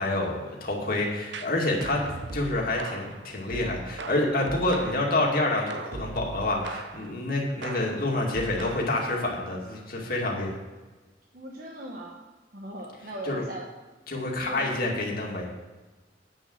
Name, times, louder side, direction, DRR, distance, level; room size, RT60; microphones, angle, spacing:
voice 1, 0.0-2.0 2.3-10.6 13.2-13.4 14.1-15.5, left 2 dB, 55° left, -1 dB, 2.3 m, -28 dB
sound 1, 1.3-5.2 5.7-7.1 7.6-9.1, right 3 dB, 75° right, 0.7 m, -39 dB
voice 2, 11.3-12.2 12.5-13.7 14.4-14.7, right 1 dB, 55° right, -1 dB, 1.1 m, -38 dB
8.9 x 6.3 x 7.8 m, 1.2 s
head